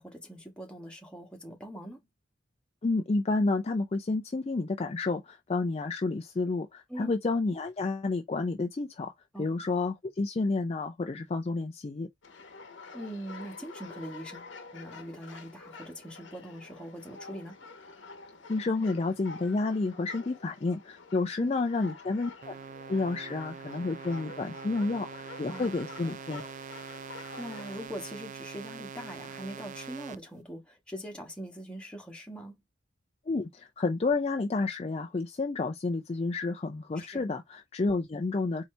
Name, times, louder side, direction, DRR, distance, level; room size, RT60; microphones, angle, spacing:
voice 1, 0.0-2.0 6.9-7.1 9.3-9.5 12.9-17.6 21.4-21.5 25.5-25.7 27.4-32.6 37.1-37.2, equal, 5° left, 1.3 m, -42 dB
voice 2, 2.8-9.1 9.4-12.1 18.5-22.5 22.9-26.4 33.3-38.6, left 3 dB, 30° left, 0.4 m, -30 dB
sound 1, 12.2-27.9, left 4 dB, 65° left, 1.0 m, -48 dB
sound 2, 22.4-30.2, right 7 dB, 40° right, 0.4 m, -44 dB
4.2 x 2.8 x 3.2 m
head